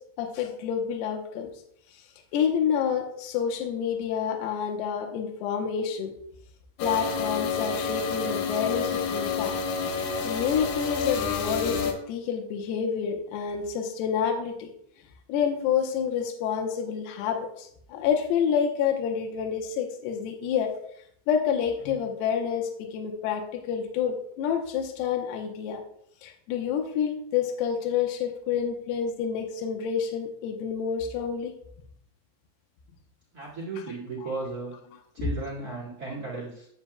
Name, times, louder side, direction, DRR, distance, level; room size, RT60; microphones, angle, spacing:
voice 1, 0.2-1.5 2.3-6.1 6.8-9.6 10.2-14.7 15.3-20.7 21.3-25.8 26.2-31.6, left 7 dB, 85° left, 3 dB, 3.0 m, -28 dB
sound 1, 6.8-11.9, left 5 dB, 70° left, 2.6 m, -29 dB
voice 2, 33.3-34.7 35.1-36.7, right 3 dB, 40° right, -3 dB, 1.4 m, -35 dB
10.0 x 8.6 x 2.2 m, 0.70 s
omnidirectional pair, 4.7 m